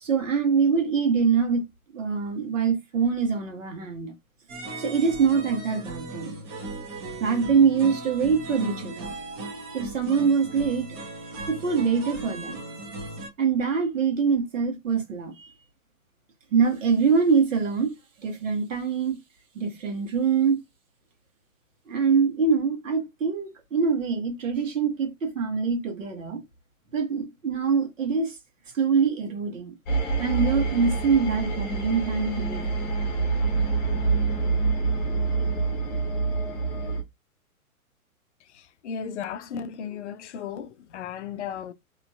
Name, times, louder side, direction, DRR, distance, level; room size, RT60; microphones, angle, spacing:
voice 1, 0.0-1.6 1.9-4.1 4.8-6.4 7.2-9.1 9.7-10.9 11.5-12.6 13.4-15.5 16.5-17.9 18.2-19.2 19.5-20.6 21.9-26.4 26.9-28.3 28.7-29.7 30.2-32.7, right 5 dB, 60° right, 1.5 m, -24 dB
sound 1, 4.5-13.3, right 2 dB, 15° right, 0.5 m, -37 dB
sound 2, 29.9-37.0, right 4 dB, 25° left, 1.0 m, -26 dB
voice 2, 38.5-41.7, left 7 dB, 55° left, 0.5 m, -35 dB
4.0 x 3.0 x 2.3 m
figure-of-eight pair, 115°, 43 cm